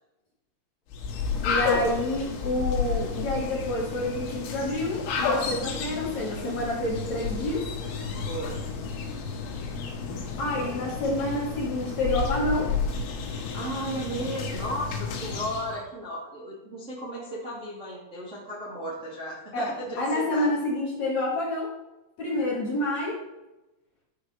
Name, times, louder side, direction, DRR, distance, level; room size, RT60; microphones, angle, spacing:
sound 1, 0.9-15.8, left 5 dB, 85° left, 4.0 m, -31 dB
voice 1, 1.4-7.7 10.4-12.7 19.5-21.7 22.2-23.2, left 1 dB, 45° left, -4 dB, 2.7 m, -28 dB
voice 2, 8.1-8.6 13.3-20.5 22.3-22.6, right 1 dB, 50° right, -6 dB, 0.8 m, -35 dB
13.0 x 4.8 x 5.7 m, 0.99 s
omnidirectional pair, 5.7 m